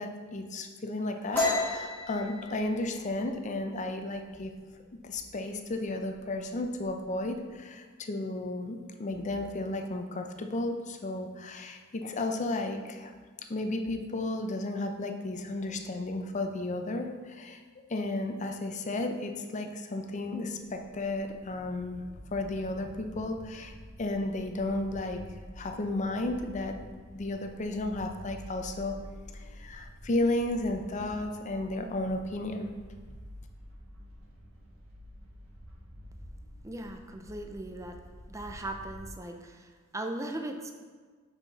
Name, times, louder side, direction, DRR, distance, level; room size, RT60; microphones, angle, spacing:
voice 1, 0.0-4.5 5.0-13.1 13.5-17.6 17.9-22.0 22.3-23.7 24.0-25.2 25.6-26.9 27.1-29.0 29.5-32.7, left 2 dB, 35° left, 5 dB, 0.5 m, -33 dB
sound 1, 1.3-4.8 5.1-5.4 5.8-6.3 6.6-7.4, left 2 dB, 10° left, 1.8 m, -33 dB
sound 2, 20.5-39.1, equal, 80° right, 1.5 m, -49 dB
voice 2, 36.6-38.0 38.3-40.7, right 1 dB, 15° right, 4 dB, 0.4 m, -38 dB
5.8 x 5.8 x 4.0 m, 1.5 s
head